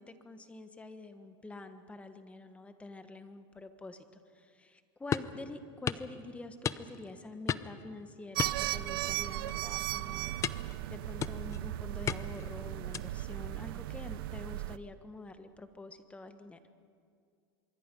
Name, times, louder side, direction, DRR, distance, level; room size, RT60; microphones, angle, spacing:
voice 1, 0.0-16.6, left 2 dB, 10° left, 9 dB, 1.3 m, -47 dB
sound 1, 5.1-5.4 5.9-6.1 6.6-7.1 7.5-7.8 8.4-9.2 9.5-9.7 10.4-10.8 11.2-11.6 12.1-12.5 12.9-13.3, left 8 dB, 25° left, 0.6 m, -35 dB
sound 2, 8.3-14.8, right 16 dB, 80° right, 0.6 m, -36 dB
25.5 x 22.5 x 5.4 m, 2.2 s
supercardioid pair, 135°, 12 cm